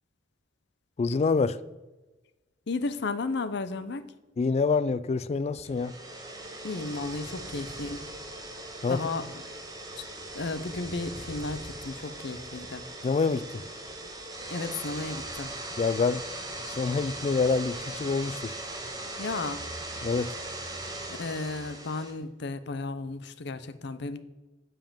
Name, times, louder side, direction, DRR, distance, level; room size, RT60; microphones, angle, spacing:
voice 1, 1.0-1.6 4.4-5.9 8.8-9.0 13.0-13.6 15.8-16.2 16.7-18.5 20.0-20.4, left 4 dB, 35° left, 0.3 m, -26 dB
voice 2, 2.7-4.0 6.6-8.0 8.9-9.2 10.0-10.1 10.3-12.8 14.5-15.5 19.2-19.6 21.1-24.2, left 3 dB, 60° left, 0.6 m, -34 dB
sound 1, 5.6-22.1, right 2 dB, 20° right, 1.3 m, -39 dB
7.3 x 5.6 x 7.0 m
head